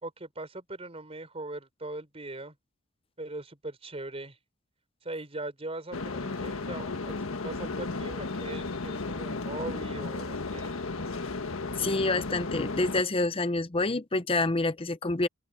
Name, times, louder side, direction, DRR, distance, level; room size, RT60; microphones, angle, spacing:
voice 1, 0.0-2.5 3.2-4.4 5.0-10.8, right 2 dB, 30° right, 4.5 m, -40 dB
sound 1, 5.9-13.0, left 3 dB, 80° left, 1.5 m, -34 dB
voice 2, 11.8-15.3, left 2 dB, 25° left, 0.7 m, -27 dB
open air
head